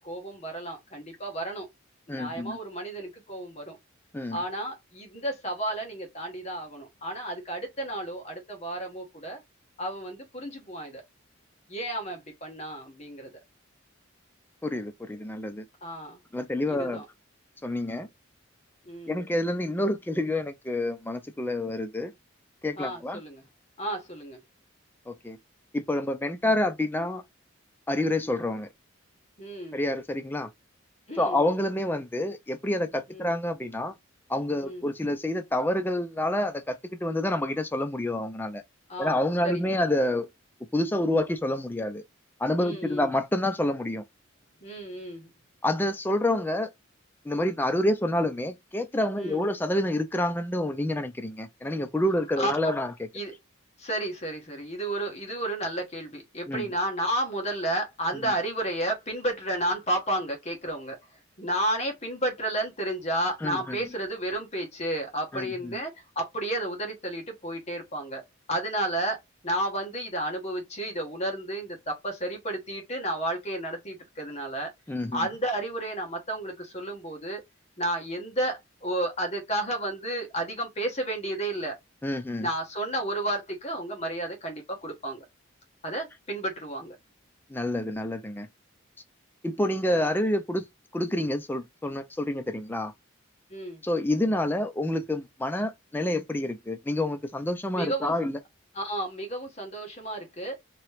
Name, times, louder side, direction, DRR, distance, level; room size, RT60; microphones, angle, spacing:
voice 1, 0.0-1.7 2.1-3.8 4.3-9.4 9.8-11.0 11.7-13.3 15.8-16.2 16.7-17.0 18.8-19.2 22.8-23.4 23.8-24.4 29.4-29.8 31.1-31.4 33.1-33.3 34.6-34.9 38.9-39.6 42.6-43.1 44.6-45.3 49.2-49.5 52.4-52.7 53.1-53.3 53.8-68.2 68.5-74.7 75.1-77.4 77.8-81.8 82.4-85.3 85.8-87.0 93.5-93.8 97.7-98.1 98.7-100.6, right 1 dB, 30° left, 1.0 m, -32 dB
voice 2, 2.1-2.6 4.1-4.4 14.6-15.7 16.3-17.0 17.6-18.1 19.1-22.1 22.6-23.2 25.1-25.4 25.7-27.2 27.9-28.7 29.7-30.5 31.2-34.0 34.3-38.6 39.0-40.3 40.7-42.0 42.4-44.0 45.6-46.7 47.2-52.9 56.5-56.7 63.4-63.8 65.3-65.8 74.9-75.2 82.0-82.5 87.5-88.5 89.4-90.7 90.9-92.9 93.8-98.4, left 1 dB, 10° left, 0.3 m, -28 dB
3.0 x 2.8 x 3.2 m
head